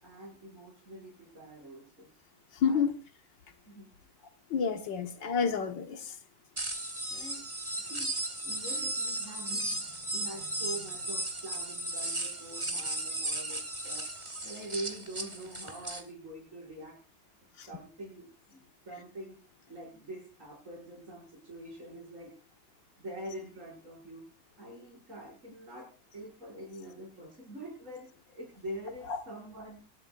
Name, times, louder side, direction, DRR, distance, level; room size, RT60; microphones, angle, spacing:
voice 1, 0.0-2.1 2.6-2.9 3.7-3.9 7.1-7.5 7.8-8.1 8.4-14.0 14.4-17.0 17.7-19.4 19.7-22.4 23.0-24.3 24.6-29.8, right 1 dB, 45° right, 6.6 m, -44 dB
voice 2, 2.6-2.9 4.5-6.1 17.6-17.7 29.1-29.2, left 6 dB, 90° left, 2.1 m, -29 dB
sound 1, 6.6-16.0, right 1 dB, 15° right, 1.8 m, -35 dB
26.5 x 12.5 x 2.5 m
omnidirectional pair, 1.9 m